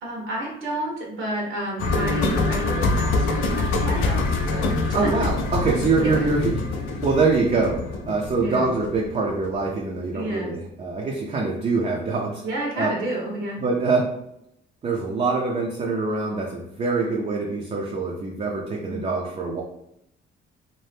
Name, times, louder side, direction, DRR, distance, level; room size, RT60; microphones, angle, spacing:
voice 1, 0.0-4.7 5.0-5.1 6.0-6.1 8.4-8.7 10.1-10.5 12.4-13.6 18.9-19.1, right 1 dB, 85° right, -2 dB, 1.1 m, -30 dB
sound 1, 1.8-9.8 10.0-10.1, left 3 dB, 85° left, 0.4 m, -25 dB
voice 2, 4.9-12.4 12.8-12.9 13.6-14.1 14.8-19.6, right 3 dB, 35° right, -1 dB, 0.5 m, -24 dB
2.7 x 2.1 x 3.4 m, 0.78 s
cardioid pair, 90°, 20 cm